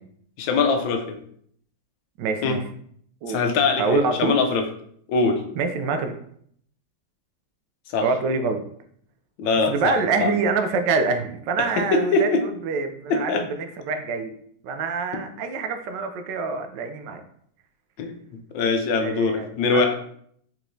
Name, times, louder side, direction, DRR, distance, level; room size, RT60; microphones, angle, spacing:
voice 1, 0.4-1.2 2.4-2.6 3.3-4.6 5.1-5.4 7.9-8.1 9.4-9.9 10.2-10.3 11.6-12.4 13.1-13.4 15.1-15.2 18.0-18.2 18.5-19.9, left 4 dB, 85° left, 5 dB, 1.4 m, -22 dB
voice 2, 2.2-2.6 3.2-3.4 3.8-4.4 5.6-6.2 8.0-8.6 9.7-14.3 14.6-17.2 19.0-19.4 19.7-19.9, right 4 dB, 75° right, 7 dB, 1.2 m, -25 dB
4.7 x 4.2 x 2.6 m, 0.64 s
omnidirectional pair, 2.0 m